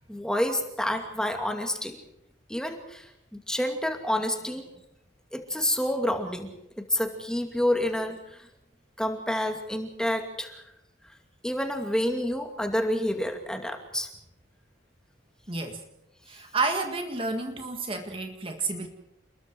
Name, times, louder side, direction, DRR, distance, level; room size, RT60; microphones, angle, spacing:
voice 1, 0.1-2.0 2.5-4.7 5.3-6.5 6.8-8.2 9.0-10.6 11.4-14.1, left 1 dB, 5° left, 4 dB, 2.5 m, -28 dB
voice 2, 15.5-15.8 16.3-18.9, right 3 dB, 25° right, 5 dB, 1.8 m, -30 dB
29.0 x 21.5 x 4.7 m, 0.85 s
head